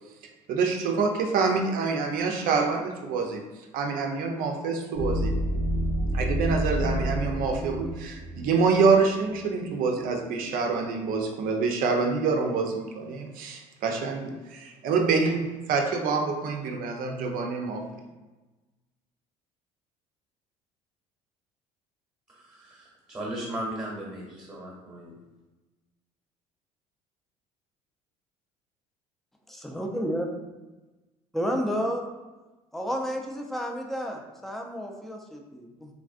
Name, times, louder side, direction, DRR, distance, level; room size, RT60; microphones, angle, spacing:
voice 1, 0.5-3.4 3.7-5.3 6.1-17.8, right 4 dB, 60° right, 3 dB, 0.5 m, -26 dB
sound 1, 4.9-9.5, equal, 75° left, 1.4 m, -29 dB
voice 2, 22.3-25.1, right 1 dB, 15° right, -3 dB, 1.0 m, -37 dB
voice 3, 29.5-30.3 31.3-32.1 32.7-35.9, equal, ahead, 1 dB, 0.5 m, -31 dB
3.3 x 2.4 x 2.4 m, 1.1 s
hypercardioid pair, 70°, 16 cm